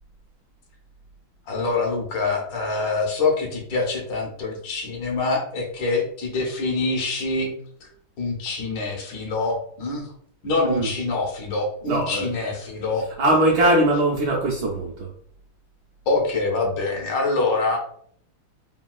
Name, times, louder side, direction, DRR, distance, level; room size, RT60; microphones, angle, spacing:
voice 1, 1.5-7.5 7.8-7.9 8.2-10.1 10.4-13.1 16.1-17.8, left 3 dB, 75° left, 0 dB, 1.4 m, -25 dB
voice 2, 11.9-12.3 13.2-15.1, right 1 dB, 75° right, -3 dB, 1.0 m, -20 dB
3.6 x 2.2 x 2.2 m, 0.63 s
omnidirectional pair, 2.2 m